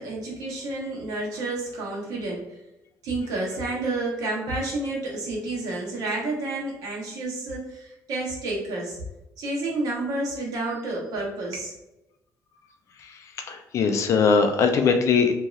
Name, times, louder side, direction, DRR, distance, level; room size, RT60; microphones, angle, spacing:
voice 1, 0.0-2.4 3.0-9.0 9.4-11.7, right 2 dB, 70° right, -3 dB, 0.9 m, -30 dB
voice 2, 13.5-15.3, left 5 dB, 50° left, 6 dB, 0.4 m, -21 dB
3.0 x 2.7 x 2.4 m, 0.93 s
cardioid pair, 170°, 6 cm